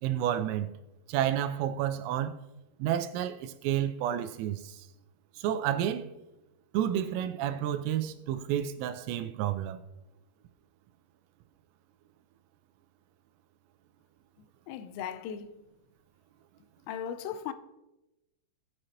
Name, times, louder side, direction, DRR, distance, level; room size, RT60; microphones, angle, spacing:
voice 1, 0.0-0.7 1.1-2.4 2.8-4.9 5.4-6.1 6.7-9.8, right 10 dB, 85° right, 3.3 m, -30 dB
voice 2, 14.7-15.6 16.9-17.5, left 8 dB, 85° left, 3.3 m, -37 dB
18.5 x 7.7 x 2.9 m
omnidirectional pair, 5.9 m